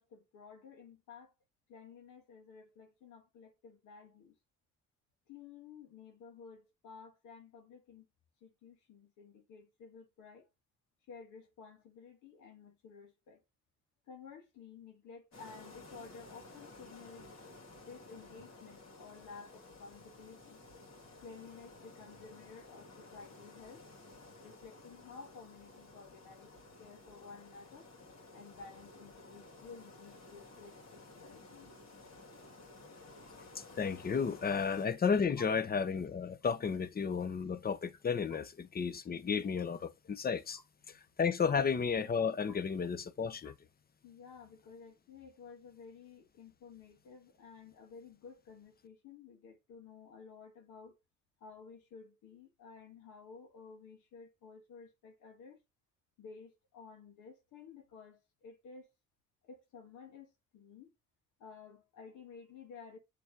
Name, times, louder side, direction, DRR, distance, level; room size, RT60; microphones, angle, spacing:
voice 1, 0.0-1.3 1.7-4.4 5.3-8.1 8.4-10.5 11.1-13.4 14.1-17.3 17.8-20.6 21.2-23.9 24.4-26.5 26.8-27.9 28.3-31.8 35.4-35.5 38.3-38.4 41.4-41.5 42.4-42.6 43.4-43.5 44.0-51.0 51.4-55.6 56.2-58.9 59.4-60.9 61.4-63.0, left 5 dB, 85° left, 1.7 m, -53 dB
sound 1, 15.3-34.9, left 2 dB, 60° left, 2.8 m, -54 dB
voice 2, 33.5-40.6 41.2-43.5, left 6 dB, 30° left, 0.8 m, -33 dB
7.1 x 3.4 x 5.0 m
cardioid pair, 90°, 30 cm